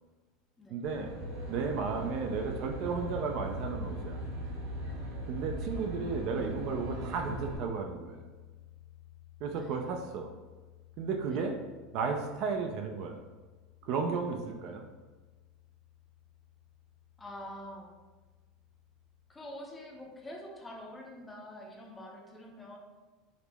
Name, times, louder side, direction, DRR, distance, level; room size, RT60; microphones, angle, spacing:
voice 1, 0.7-1.1 1.5-4.2 5.3-8.3 9.4-10.3 11.0-11.6 11.9-13.2 13.8-14.9, right 5 dB, 45° right, 4 dB, 0.4 m, -34 dB
Aircraft, 0.8-7.6, right 1 dB, 80° right, 1.0 m, -40 dB
sound 1, 2.9-19.3, left 7 dB, 30° right, 0.8 m, -52 dB
voice 2, 9.5-9.9 11.3-11.4 17.2-17.9 19.3-22.8, left 1 dB, 10° left, -1 dB, 0.5 m, -46 dB
4.8 x 2.0 x 3.4 m, 1.3 s
supercardioid pair, 165°, 0 cm